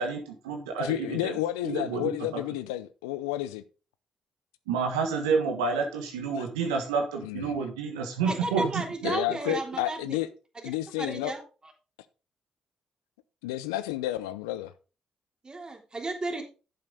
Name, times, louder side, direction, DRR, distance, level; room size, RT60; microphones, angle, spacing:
voice 1, 0.0-1.3 1.6-2.4 4.7-9.1, right 5 dB, 90° right, 1.5 m, -29 dB
voice 2, 0.8-3.6 6.4-6.5 7.2-7.6 9.0-10.3 10.6-11.4 13.4-14.7, left 15 dB, 90° left, 0.6 m, -31 dB
voice 3, 8.2-10.2 11.0-11.4 15.4-16.4, right 2 dB, 30° right, 3.3 m, -33 dB
9.3 x 7.5 x 3.9 m
hypercardioid pair, 45°, 3 cm